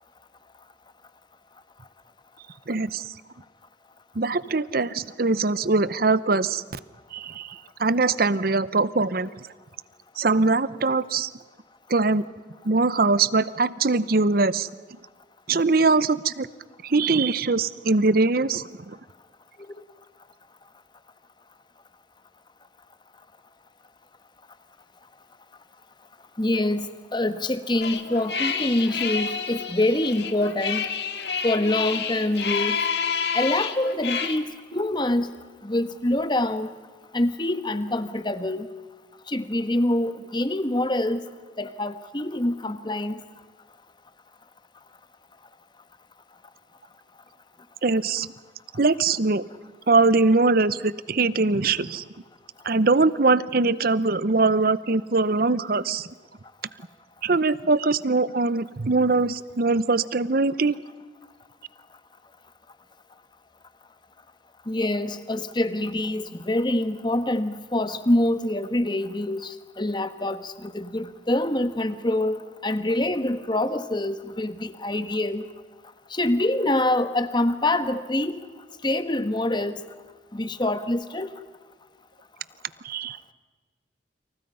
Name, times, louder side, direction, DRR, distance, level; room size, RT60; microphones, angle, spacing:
voice 1, 2.7-3.0 4.2-6.6 7.1-9.3 10.2-11.3 11.9-12.2 12.6-14.7 15.5-16.5 16.8-18.7 47.8-48.3 48.8-49.4 49.9-52.0 52.6-56.1 57.2-60.8 82.8-83.3, right 3 dB, 50° right, 17 dB, 0.8 m, -22 dB
voice 2, 26.4-30.9 31.4-32.8 33.3-35.3 35.6-36.7 37.1-38.7 39.3-41.2 41.6-43.2 64.7-75.5 76.1-78.4 78.8-79.8 80.3-81.3, left 1 dB, 25° left, 11 dB, 1.2 m, -25 dB
sound 1, 27.8-34.4, left 6 dB, 60° left, 1.8 m, -29 dB
29.5 x 27.5 x 5.6 m, 1.4 s
head